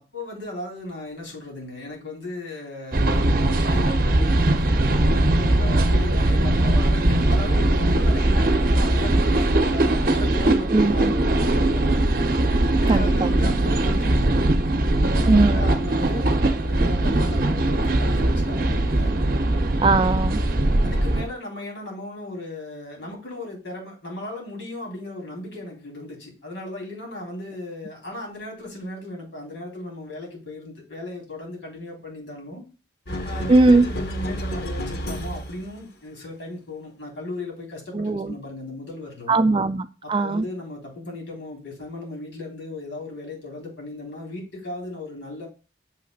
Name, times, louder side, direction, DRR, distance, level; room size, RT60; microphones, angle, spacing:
voice 1, 0.0-12.3 12.8-14.3 14.8-16.3 16.6-19.1 20.8-32.6 33.2-39.4 40.0-45.5, left 2 dB, 85° left, -2 dB, 3.8 m, -36 dB
sound 1, 2.9-21.2, right 1 dB, 50° right, 0.7 m, -20 dB
voice 2, 10.7-11.1 12.9-13.3 15.3-15.7 19.8-20.4 33.5-33.9 37.9-38.3 39.3-40.4, right 3 dB, 25° right, 11 dB, 0.3 m, -19 dB
sound 2, 33.1-35.8, equal, 55° left, 0.9 m, -30 dB
6.5 x 3.2 x 5.3 m, 0.33 s
head